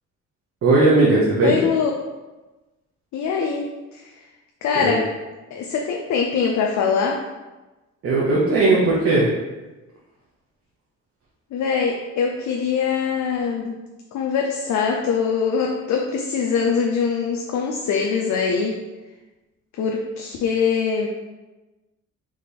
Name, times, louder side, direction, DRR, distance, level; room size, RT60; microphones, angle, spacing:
voice 1, 0.6-1.6 4.7-4.9 8.0-9.3, right 2 dB, 50° right, -5 dB, 1.0 m, -17 dB
voice 2, 1.4-2.0 3.1-4.1 4.6-5.0 5.5-7.2 11.5-13.8 14.1-18.8 19.8-21.1, left 6 dB, 70° left, 1 dB, 0.6 m, -23 dB
3.6 x 3.1 x 4.2 m, 1.1 s
cardioid pair, 90°, 30 cm